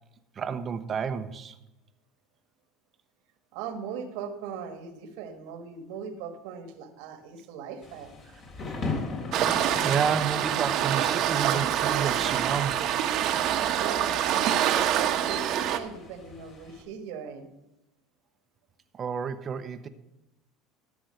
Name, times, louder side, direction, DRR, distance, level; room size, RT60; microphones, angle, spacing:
voice 1, 0.4-1.6 8.6-9.0 9.8-13.0 18.9-19.9, right 7 dB, 35° right, 9 dB, 0.8 m, -31 dB
voice 2, 3.5-8.1 13.8-17.5, right 7 dB, 75° right, 8 dB, 1.5 m, -38 dB
Thunder / Rain, 7.8-16.8, left 3 dB, 45° left, 3.1 m, -40 dB
Waves surf, 9.3-15.8, right 10 dB, 60° right, 1.1 m, -26 dB
13.0 x 6.1 x 6.6 m, 0.91 s
supercardioid pair, 100°, 0 cm